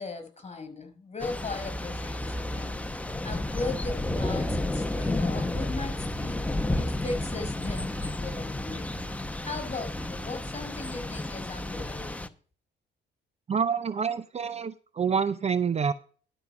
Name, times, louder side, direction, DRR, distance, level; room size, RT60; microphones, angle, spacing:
voice 1, 0.0-2.8 3.2-8.9 9.5-12.2, left 3 dB, 30° left, 7 dB, 5.4 m, -38 dB
Thunder / Rain, 1.2-12.3, left 1 dB, 5° left, 0.8 m, -31 dB
voice 2, 13.5-15.9, right 6 dB, 30° right, 14 dB, 0.6 m, -27 dB
12.0 x 5.3 x 6.0 m, 0.41 s
cardioid pair, 85°, 21 cm